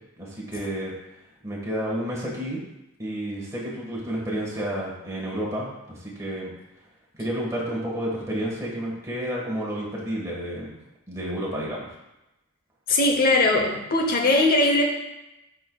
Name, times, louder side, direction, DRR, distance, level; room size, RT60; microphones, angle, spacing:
voice 1, 0.2-0.9 1.4-2.6 3.0-6.5 7.2-10.8 11.1-11.9, right 1 dB, 15° right, -4 dB, 1.6 m, -30 dB
voice 2, 12.9-14.9, left 2 dB, 45° left, 2 dB, 0.9 m, -20 dB
9.0 x 4.6 x 2.3 m, 0.94 s
head